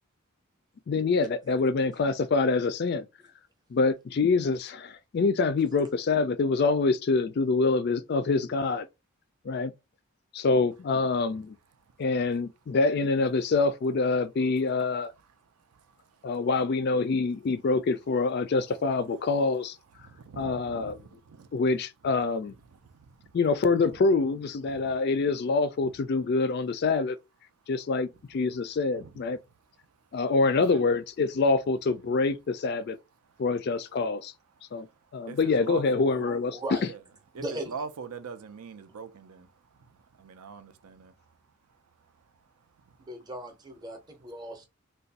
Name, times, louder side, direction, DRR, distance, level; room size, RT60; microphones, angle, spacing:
voice 1, 0.9-3.1 3.7-8.9 9.5-9.7 10.3-11.6 12.0-15.1 16.2-19.8 20.4-21.0 21.5-22.5 23.3-27.2 27.7-29.4 30.1-33.0 33.4-34.3 34.7-34.9 35.1-36.6, left 3 dB, 45° left, 0.3 m, -26 dB
voice 2, 15.6-16.3 20.0-21.6 22.0-22.1 22.5-23.4 24.6-25.0 28.9-29.2 30.5-30.9 33.3-33.4 34.8-36.1 36.8-37.0 37.3-41.4 42.0-42.2 42.6-43.1, right 5 dB, 85° right, 0.5 m, -44 dB
voice 3, 36.1-36.9 37.4-37.9 43.0-44.7, right 1 dB, 20° right, 0.6 m, -38 dB
2.5 x 2.2 x 3.9 m
head